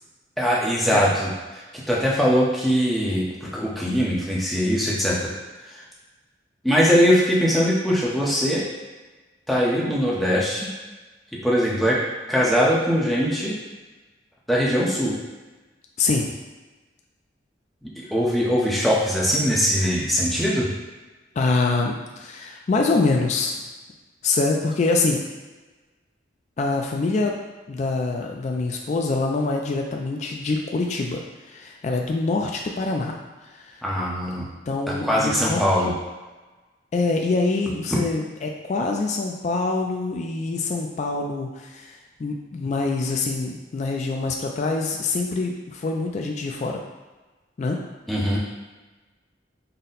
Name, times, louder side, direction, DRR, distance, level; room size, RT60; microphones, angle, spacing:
voice 1, 0.4-5.3 5.7-5.8 6.6-8.6 9.5-10.7 11.3-12.0 12.3-13.5 14.5-15.1 18.0-20.7 33.8-34.5 35.0-35.9 48.1-48.4, equal, ahead, -6 dB, 0.7 m, -21 dB
voice 2, 16.0-16.3 21.4-23.6 24.2-25.2 26.6-27.4 27.7-31.2 31.5-33.2 33.5-33.7 34.3-35.9 36.9-46.8 47.6-47.8, left 3 dB, 40° left, 1 dB, 0.3 m, -25 dB
4.1 x 2.1 x 3.8 m, 1.2 s
head